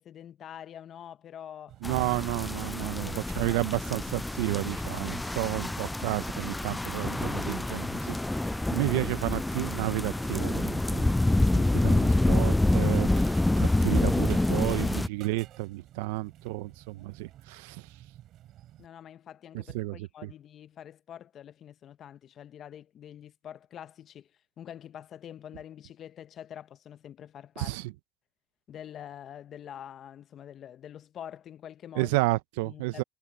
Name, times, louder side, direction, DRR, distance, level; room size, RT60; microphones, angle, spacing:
voice 1, 0.0-1.8 2.9-3.7 18.8-24.3 24.6-27.8 28.7-32.2 32.6-33.0, left 10 dB, 45° left, 0.9 m, -45 dB
sound 1, 1.7-18.9, right 13 dB, 55° right, 3.3 m, -52 dB
sound 2, 1.8-15.1, left 2 dB, 10° left, 0.4 m, -27 dB
voice 2, 1.8-11.1 11.5-17.9 19.5-20.3 27.6-27.9 31.9-33.0, right 21 dB, 80° right, 0.8 m, -32 dB
supercardioid pair, 100°, 0 cm